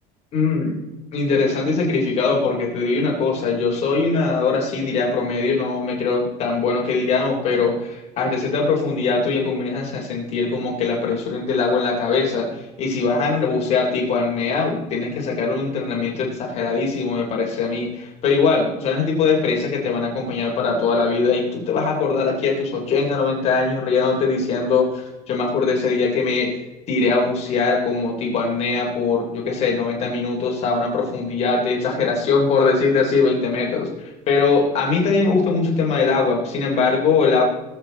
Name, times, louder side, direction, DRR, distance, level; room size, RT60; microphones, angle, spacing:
voice 1, 0.3-0.8 1.1-26.5 26.9-33.9 34.3-37.4, left 4 dB, 45° left, -1 dB, 3.3 m, -21 dB
19.0 x 8.0 x 3.9 m, 1.0 s
cardioid pair, 160°, 15 cm